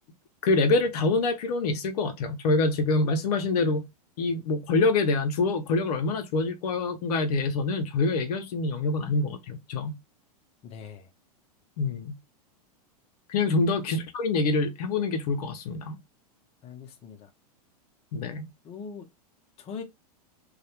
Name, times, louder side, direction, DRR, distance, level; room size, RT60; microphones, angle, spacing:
voice 1, 0.4-3.8 4.2-9.9 11.8-12.1 13.3-16.0 18.1-18.5, left 3 dB, 70° left, 0.6 m, -26 dB
voice 2, 10.6-11.1 13.9-14.0 16.6-17.3 18.6-19.1 19.6-19.8, left 6 dB, 30° left, 0.6 m, -41 dB
2.3 x 2.1 x 2.8 m
hypercardioid pair, 115°, 20 cm